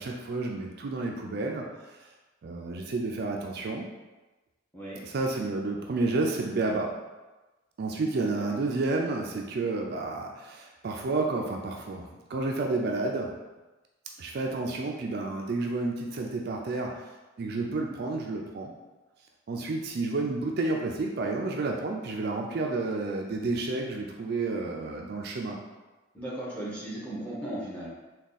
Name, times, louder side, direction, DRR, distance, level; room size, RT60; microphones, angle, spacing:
voice 1, 0.0-1.7 2.4-3.9 5.0-6.9 7.8-12.0 12.3-13.3 14.2-17.0 17.4-18.7 19.5-25.6, right 3 dB, 55° right, 1 dB, 0.4 m, -30 dB
voice 2, 8.1-8.5 26.1-27.9, right 1 dB, 5° left, -7 dB, 0.9 m, -37 dB
3.5 x 2.3 x 4.0 m, 1.2 s
head